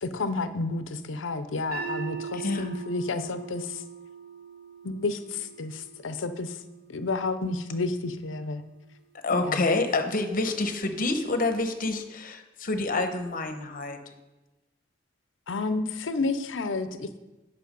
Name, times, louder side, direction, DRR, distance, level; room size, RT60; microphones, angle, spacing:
voice 1, 0.0-3.8 4.8-6.6 6.9-8.6 9.4-9.7 15.5-17.1, left 3 dB, 85° left, 11 dB, 0.6 m, -31 dB
sound 1, 1.7-7.9, right 7 dB, 45° right, 1.6 m, -41 dB
voice 2, 2.3-2.7 9.2-14.0, left 3 dB, 45° left, 7 dB, 0.9 m, -27 dB
9.2 x 5.7 x 5.2 m, 1.1 s
head